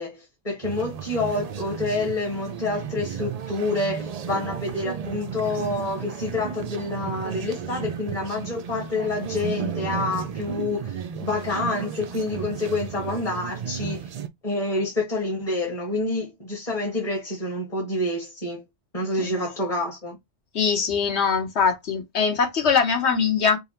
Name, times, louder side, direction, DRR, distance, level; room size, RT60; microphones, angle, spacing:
voice 1, 0.0-14.1 14.4-18.6 18.9-20.2, left 2 dB, 30° left, 1.5 m, -28 dB
sound 1, 0.6-14.3, right 7 dB, 60° right, 0.4 m, -33 dB
voice 2, 20.5-23.6, left 6 dB, 70° left, 1.3 m, -22 dB
5.3 x 2.1 x 4.3 m
omnidirectional pair, 1.2 m